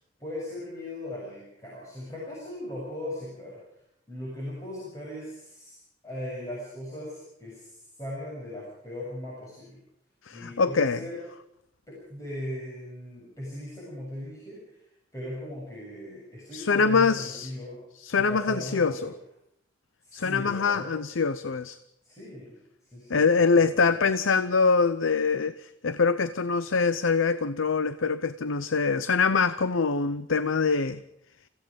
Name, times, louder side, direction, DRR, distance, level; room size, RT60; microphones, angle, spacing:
voice 1, 0.2-3.6 4.1-5.8 6.0-9.8 10.3-11.2 11.9-14.8 15.1-17.8 18.3-19.1 20.0-20.9 22.0-22.6 22.9-23.9, left 1 dB, 15° left, 7.2 m, -38 dB
voice 2, 10.2-11.0 16.5-17.5 18.0-19.0 20.1-21.8 23.1-31.0, left 4 dB, 90° left, 0.7 m, -24 dB
30.0 x 16.5 x 5.3 m
head